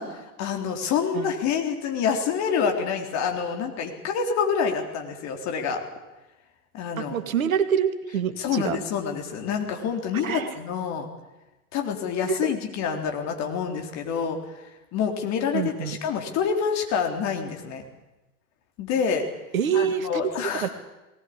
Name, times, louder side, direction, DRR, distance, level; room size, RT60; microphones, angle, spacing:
voice 1, 0.0-5.8 6.7-7.2 8.4-11.1 11.7-14.4 14.9-17.8 18.8-19.2 19.7-20.7, left 6 dB, 40° left, 3 dB, 3.8 m, -27 dB
voice 2, 7.0-8.8 10.2-10.6 12.3-12.5 15.5-16.0 19.5-20.2 20.5-20.7, right 8 dB, 70° right, 10 dB, 1.9 m, -26 dB
19.5 x 19.0 x 8.8 m, 1.0 s
figure-of-eight pair, 85°, 43 cm